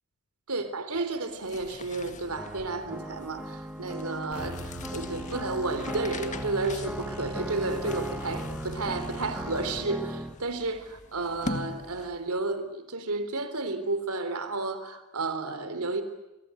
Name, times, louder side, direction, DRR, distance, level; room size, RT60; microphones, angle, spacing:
voice 1, 0.5-4.6 4.9-16.0, right 3 dB, 80° right, 10 dB, 3.5 m, -32 dB
sound 1, 1.2-12.4, left 2 dB, 35° left, 1.9 m, -43 dB
sound 2, 2.4-10.3, right 1 dB, 5° right, 1.3 m, -38 dB
sound 3, 4.3-9.9, equal, 75° left, 2.3 m, -43 dB
29.0 x 23.5 x 7.9 m, 1.0 s
head